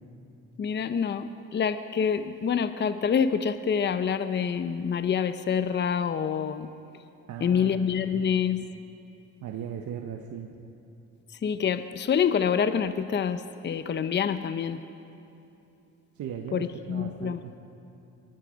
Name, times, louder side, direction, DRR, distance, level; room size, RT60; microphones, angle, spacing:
voice 1, 0.6-6.7 7.4-8.6 11.4-14.8 16.5-17.4, left 7 dB, 35° left, 11 dB, 0.7 m, -27 dB
voice 2, 7.3-7.8 8.1-8.3 9.4-10.5 16.2-17.5, right 8 dB, 75° right, 3 dB, 1.1 m, -37 dB
23.0 x 12.0 x 5.1 m, 2.8 s
cardioid pair, 90°, 30 cm